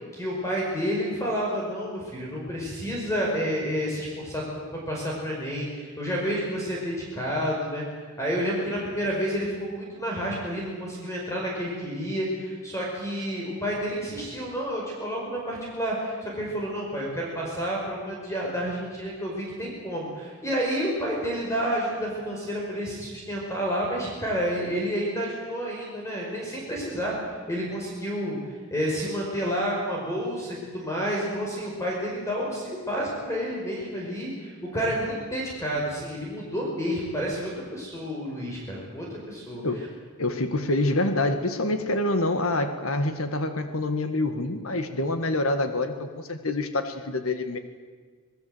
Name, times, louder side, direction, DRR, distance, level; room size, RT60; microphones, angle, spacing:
voice 1, 0.1-7.8 8.2-28.4 28.7-39.6, equal, 15° left, -3 dB, 5.3 m, -30 dB
voice 2, 40.2-47.6, left 2 dB, 70° left, 8 dB, 1.7 m, -26 dB
26.0 x 20.5 x 8.0 m, 1.5 s
head